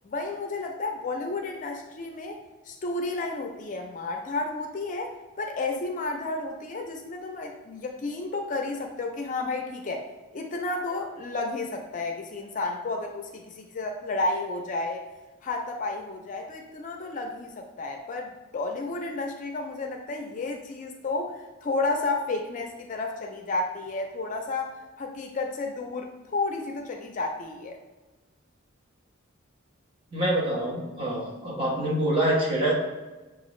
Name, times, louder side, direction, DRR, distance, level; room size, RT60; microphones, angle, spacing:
voice 1, 0.0-2.4 2.7-15.0 15.4-27.8, left 3 dB, 40° left, 3 dB, 0.4 m, -32 dB
voice 2, 30.1-32.7, right 1 dB, 25° right, -4 dB, 1.1 m, -26 dB
6.5 x 2.4 x 3.1 m, 1.2 s
head